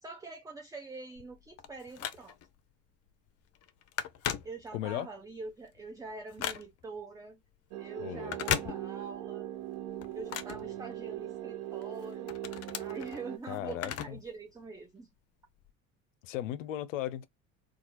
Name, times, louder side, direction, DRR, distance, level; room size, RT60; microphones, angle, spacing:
voice 1, 0.0-2.4 4.4-7.4 7.8-9.5 10.1-12.3 12.8-15.1, right 3 dB, 10° right, 0.4 m, -44 dB
Telephone, 1.2-2.6 3.1-3.3 3.5-5.0 5.5-7.0 8.2-9.3 9.6-11.4 11.8-14.3 14.6-14.7 15.6-15.7, left 10 dB, 40° left, 0.5 m, -38 dB
voice 2, 4.7-5.1 8.0-8.4 13.5-14.2 16.2-17.3, left 12 dB, 85° left, 0.5 m, -36 dB
sound 1, 7.7-13.4, right 14 dB, 60° right, 0.5 m, -40 dB
2.9 x 2.3 x 2.9 m
hypercardioid pair, 65°, 38 cm